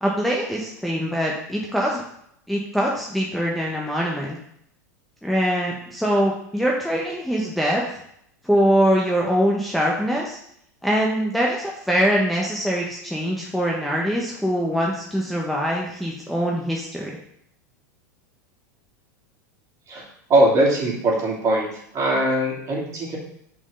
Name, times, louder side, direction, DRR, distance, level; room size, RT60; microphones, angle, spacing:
voice 1, 0.0-2.0 2.5-4.4 5.2-7.8 8.4-10.4 10.8-17.1, equal, ahead, -3 dB, 1.1 m, -23 dB
voice 2, 19.9-21.7 21.9-23.2, right 1 dB, 35° right, -3 dB, 2.9 m, -21 dB
6.0 x 4.5 x 5.5 m, 0.72 s
hypercardioid pair, 95°, 10 cm